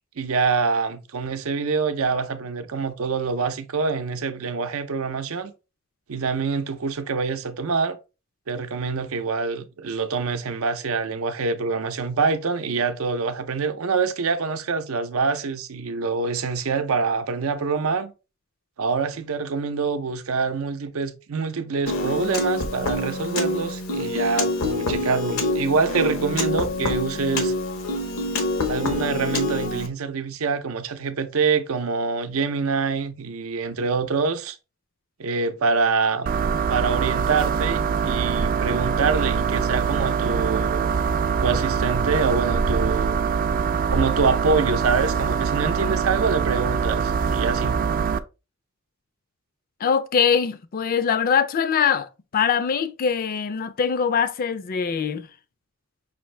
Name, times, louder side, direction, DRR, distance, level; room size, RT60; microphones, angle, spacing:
voice 1, 0.2-5.5 6.1-8.0 8.5-18.1 18.8-27.5 28.7-34.6 35.2-36.3 36.7-41.1 41.4-43.2 43.9-47.8, right 4 dB, 90° right, 0.6 m, -25 dB
Piano, 21.9-29.9, left 2 dB, 85° left, 0.9 m, -26 dB
sound 1, 36.3-48.2, right 6 dB, 40° right, 0.3 m, -23 dB
voice 2, 49.8-55.3, left 7 dB, 45° left, 0.4 m, -23 dB
5.6 x 2.6 x 3.2 m
head